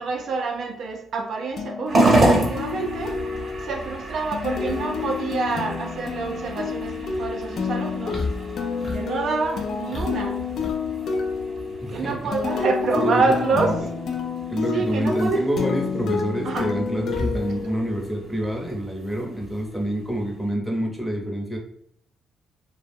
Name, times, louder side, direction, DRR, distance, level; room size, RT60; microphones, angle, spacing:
voice 1, 0.0-3.2 3.6-8.2 8.9-10.4 11.9-13.8 14.7-15.5 16.4-16.7, right 4 dB, 65° right, 3 dB, 0.3 m, -27 dB
sound 1, 1.6-18.3, left 6 dB, 65° left, 0.4 m, -30 dB
sound 2, 1.9-20.5, right 2 dB, 40° right, 0.8 m, -30 dB
sound 3, 4.6-20.2, left 2 dB, 30° left, 0.9 m, -37 dB
voice 2, 11.8-12.3 13.0-13.7 14.5-21.6, right 1 dB, ahead, 0 dB, 0.7 m, -27 dB
2.2 x 2.1 x 3.3 m, 0.66 s
cardioid pair, 90°, 0 cm